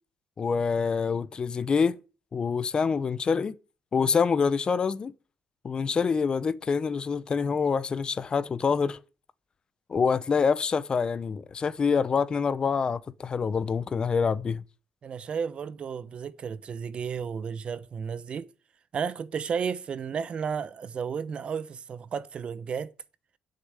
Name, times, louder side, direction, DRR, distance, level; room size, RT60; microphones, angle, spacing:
voice 1, 0.4-2.0 2.3-3.6 3.9-5.1 5.6-9.0 9.9-14.6, left 5 dB, 35° left, 0.7 m, -26 dB
voice 2, 15.0-18.5 18.9-22.9, right 6 dB, 40° right, 0.8 m, -33 dB
11.5 x 6.7 x 9.0 m
cardioid pair, 125°, 3 cm